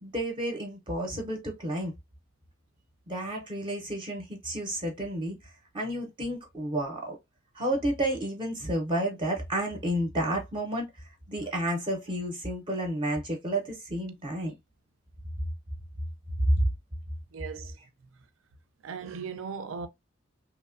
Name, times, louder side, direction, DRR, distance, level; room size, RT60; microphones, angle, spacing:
voice 1, 0.0-1.9 3.1-7.2 7.5-10.9 11.3-14.5 16.5-16.6, right 1 dB, 25° right, 0.5 m, -31 dB
voice 2, 17.3-17.8 18.8-19.9, right 6 dB, 80° right, 0.4 m, -38 dB
2.9 x 2.1 x 2.4 m
head